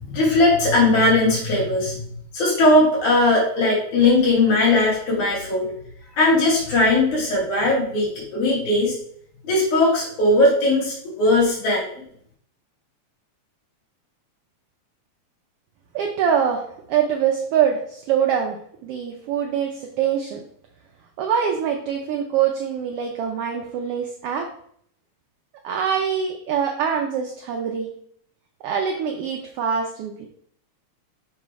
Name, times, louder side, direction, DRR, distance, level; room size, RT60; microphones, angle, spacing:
voice 1, 0.0-1.9 2.3-5.7 6.2-9.0 9.4-11.9, left 2 dB, 85° left, -5 dB, 3.7 m, -19 dB
voice 2, 15.9-16.6 16.9-18.6 18.8-20.4 21.2-24.5 25.6-27.9 28.6-30.3, right 8 dB, 85° right, 2 dB, 1.3 m, -24 dB
6.6 x 3.1 x 4.6 m, 0.64 s
omnidirectional pair, 3.4 m